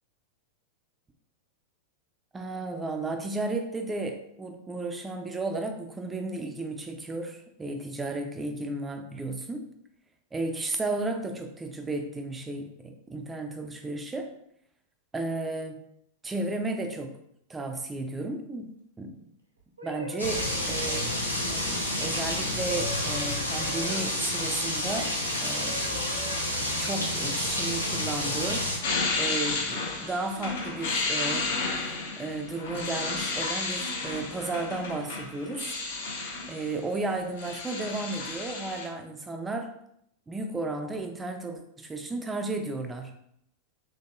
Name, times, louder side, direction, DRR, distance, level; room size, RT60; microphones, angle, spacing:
voice 1, 2.3-9.7 10.3-14.3 15.1-15.8 16.2-17.1 17.5-18.7 19.0-19.1 19.8-21.1 22.0-25.1 25.4-25.9 26.6-28.6 29.2-35.7 36.5-39.7 40.3-43.1, right 2 dB, 15° right, 4 dB, 0.5 m, -33 dB
sound 1, 19.6-25.1 25.6-28.4 29.1-29.4, right 1 dB, 80° right, 0.8 m, -43 dB
sound 2, 20.2-28.8, left 1 dB, 85° left, 0.7 m, -29 dB
sound 3, 28.8-36.8 37.1-38.9, left 3 dB, 60° left, 1.0 m, -32 dB
3.6 x 3.5 x 2.4 m, 0.74 s
figure-of-eight pair, 90°, 0 cm